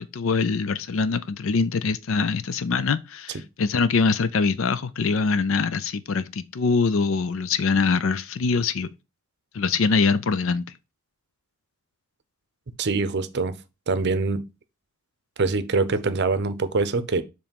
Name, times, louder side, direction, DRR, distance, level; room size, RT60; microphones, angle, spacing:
voice 1, 0.0-8.9 9.5-10.7, left 4 dB, 60° left, 0.5 m, -23 dB
voice 2, 12.8-13.6 13.9-14.4 15.4-17.2, right 3 dB, 50° right, 0.6 m, -24 dB
7.2 x 3.2 x 5.2 m
head